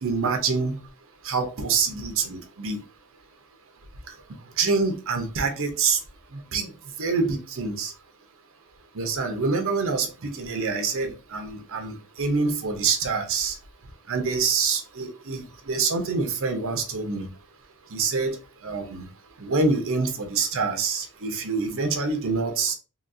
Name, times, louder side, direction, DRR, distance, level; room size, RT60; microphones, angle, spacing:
voice 1, 0.0-0.8 1.2-2.8 4.6-6.0 6.5-6.7 7.0-7.9 9.0-13.5 14.1-17.3 17.9-18.4 18.6-19.1 19.4-22.7, right 4 dB, 65° right, 0.7 m, -26 dB
4.0 x 2.3 x 2.5 m
head